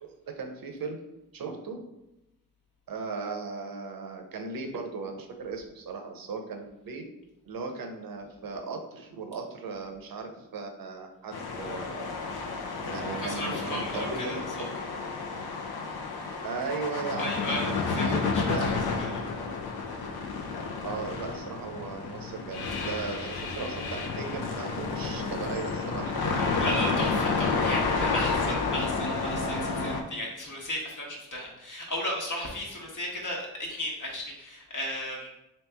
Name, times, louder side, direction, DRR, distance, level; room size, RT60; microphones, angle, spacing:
voice 1, 0.0-1.0 1.3-1.9 2.9-7.0 7.4-12.1 12.8-14.4 16.4-17.5 17.9-18.7 19.1-19.2 20.8-26.3, right 4 dB, 60° right, 4 dB, 0.7 m, -37 dB
sound 1, 11.3-30.0, left 4 dB, 70° left, 0.6 m, -30 dB
voice 2, 13.2-14.6 17.2-18.8 19.1-19.2 26.4-35.3, left 1 dB, 50° left, -2 dB, 1.1 m, -35 dB
3.0 x 2.8 x 3.4 m, 0.91 s
cardioid pair, 50°, 39 cm